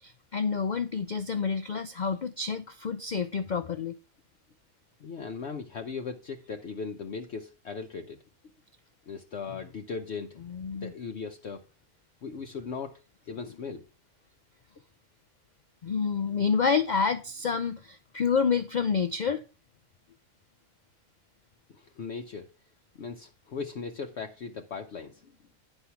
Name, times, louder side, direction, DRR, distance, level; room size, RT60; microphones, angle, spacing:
voice 1, 0.0-4.0 10.5-10.9 15.8-19.4, left 5 dB, 85° left, 0.4 m, -28 dB
voice 2, 5.0-8.2 9.1-10.4 10.7-11.6 12.2-13.0 13.2-13.9 21.7-22.5 22.9-25.4, left 5 dB, 60° left, 1.0 m, -38 dB
9.9 x 5.5 x 5.7 m
omnidirectional pair, 1.5 m